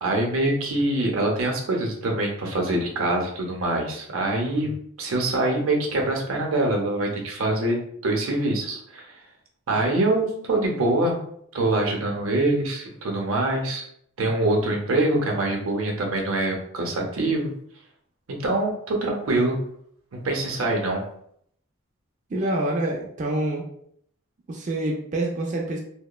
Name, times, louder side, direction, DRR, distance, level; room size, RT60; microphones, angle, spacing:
voice 1, 0.0-4.7 5.0-9.1 9.7-11.2 11.5-13.8 14.2-17.5 18.4-19.6 20.1-21.0, right 2 dB, 85° right, 0 dB, 0.6 m, -24 dB
voice 2, 22.3-23.7 24.5-25.8, right 1 dB, 35° right, -2 dB, 0.3 m, -26 dB
2.9 x 2.1 x 2.2 m, 0.67 s
head